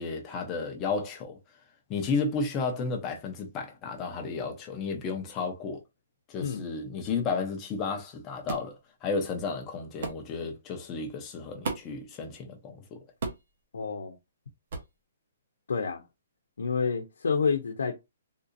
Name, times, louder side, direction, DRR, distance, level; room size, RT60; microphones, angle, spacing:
voice 1, 0.0-1.4 1.9-5.8 6.3-13.0, left 4 dB, 15° left, 0.6 m, -33 dB
sound 1, 8.5-8.7 10.0-10.2 11.6-12.0 13.2-13.5 14.7-14.9, right 4 dB, 45° right, 0.9 m, -34 dB
voice 2, 13.7-14.2 15.7-16.0 16.6-18.0, left 5 dB, 90° left, 0.7 m, -28 dB
3.7 x 2.7 x 2.6 m
hypercardioid pair, 175°, 0 cm